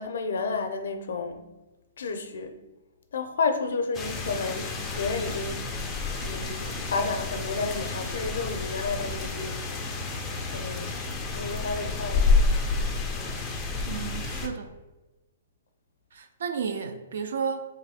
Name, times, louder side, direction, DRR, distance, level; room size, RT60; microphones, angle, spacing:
voice 1, 0.0-1.5 2.0-2.6 3.1-5.7 6.2-9.8 10.5-11.0 11.3-12.5, left 4 dB, 75° left, 0.5 m, -31 dB
sound 1, 3.9-14.5, left 3 dB, 10° left, 0.3 m, -29 dB
voice 2, 13.8-14.7 16.1-17.7, right 6 dB, 65° right, 0.4 m, -32 dB
3.0 x 2.6 x 4.1 m
hypercardioid pair, 170°, 0 cm